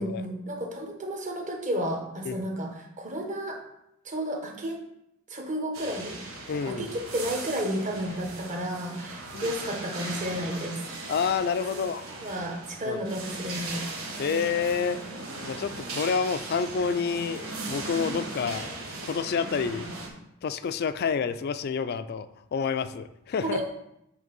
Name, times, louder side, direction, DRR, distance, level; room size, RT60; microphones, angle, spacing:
voice 1, 0.0-3.6 4.0-4.8 5.3-6.2 6.6-10.9 11.7-13.9 23.4-23.6, equal, 35° right, 1 dB, 1.2 m, -32 dB
sound 1, 5.7-20.1, right 2 dB, 75° right, 1.4 m, -38 dB
voice 2, 6.5-6.9 9.3-9.5 11.1-12.1 12.9-13.0 14.2-15.0 15.4-19.9 20.4-23.6, left 6 dB, 50° left, 13 dB, 0.4 m, -29 dB
7.8 x 3.4 x 5.3 m, 0.82 s
head